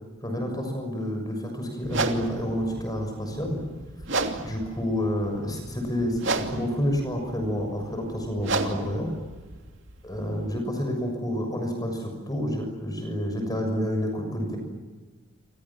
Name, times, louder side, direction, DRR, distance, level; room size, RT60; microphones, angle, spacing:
voice 1, 0.2-3.6 4.4-9.1 10.0-14.6, equal, 20° left, 4 dB, 6.6 m, -29 dB
sound 1, 1.8-10.6, right 3 dB, 60° right, 2.8 m, -33 dB
29.0 x 27.0 x 7.5 m, 1.3 s
head